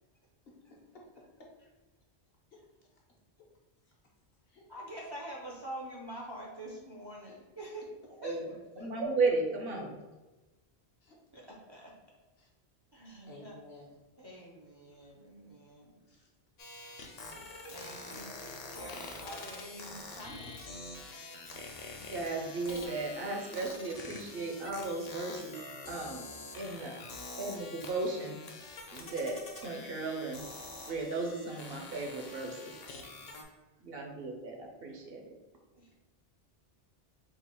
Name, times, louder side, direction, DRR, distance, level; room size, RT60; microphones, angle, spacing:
voice 1, 0.5-0.9 2.5-2.6 3.9-4.0 4.5-4.7 7.3-7.4 11.0-11.2 12.4-12.5 12.9-13.9 16.0-16.3, left 2 dB, 65° left, -1 dB, 1.1 m, -55 dB
voice 2, 4.7-7.8 8.2-8.9 11.3-11.9 12.9-13.6 14.2-16.0 17.3-17.4 17.7-20.6 35.7-35.9, right 1 dB, 35° right, -3 dB, 0.4 m, -46 dB
voice 3, 8.8-10.0 22.0-26.2 26.6-27.0 27.4-28.4 28.9-30.5 30.9-32.7 33.8-35.2, right 3 dB, 65° right, 2 dB, 0.9 m, -35 dB
sound 1, 16.6-33.4, left 3 dB, 45° left, 0.6 m, -46 dB
Harp, 17.4-22.6, equal, 85° right, 1.1 m, -55 dB
3.8 x 2.4 x 4.3 m, 1.1 s
omnidirectional pair, 1.1 m